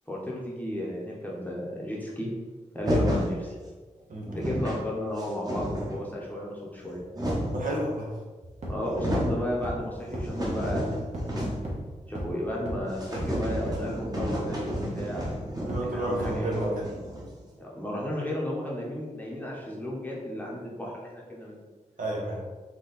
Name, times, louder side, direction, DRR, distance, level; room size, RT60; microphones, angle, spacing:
voice 1, 0.1-2.3 2.7-3.6 4.3-7.0 8.7-11.0 12.1-15.2 15.7-16.7 17.6-21.6, left 1 dB, 10° left, -4 dB, 0.8 m, -33 dB
sound 1, 2.8-3.3 4.0-4.1 4.2-4.8 5.2-6.0 6.7-7.7 8.4-8.5 8.8-9.4 9.8-11.8 12.0-12.1 12.4-12.5 12.9-17.4, equal, 30° right, 0.9 m, -31 dB
voice 2, 7.5-8.1 15.7-16.9 22.0-22.4, right 1 dB, 80° right, -3 dB, 1.2 m, -31 dB
sound 2, 8.6-8.7 9.1-9.2 9.6-9.7 10.1-10.2 10.6-10.7 11.1-11.2 11.7-11.8 12.2-12.3 12.7-12.8 13.2-13.3 13.7-13.8 14.2-14.3 14.7-14.8 15.2-15.3 15.7-15.8 16.2-16.3, equal, 55° right, 1.3 m, -33 dB
4.2 x 2.9 x 4.0 m, 1.3 s
wide cardioid pair, 135°, 14 cm